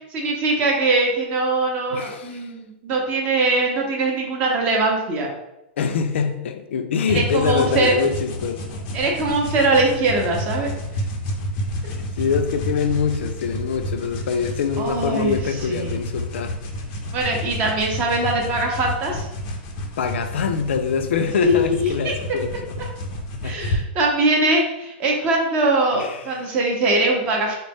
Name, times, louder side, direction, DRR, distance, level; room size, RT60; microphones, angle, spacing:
voice 1, 0.1-5.3 7.1-7.9 8.9-10.7 14.8-16.0 17.1-19.3 21.4-22.4 23.4-27.6, right 2 dB, 20° right, 0 dB, 0.5 m, -22 dB
voice 2, 1.9-2.5 5.8-8.6 12.1-16.6 20.0-22.9 23.4-23.8 25.9-26.4, left 6 dB, 85° left, 7 dB, 0.4 m, -24 dB
sound 1, 7.1-23.8, equal, 25° left, 0.4 m, -30 dB
3.9 x 2.0 x 3.4 m, 0.92 s
supercardioid pair, 175°, 6 cm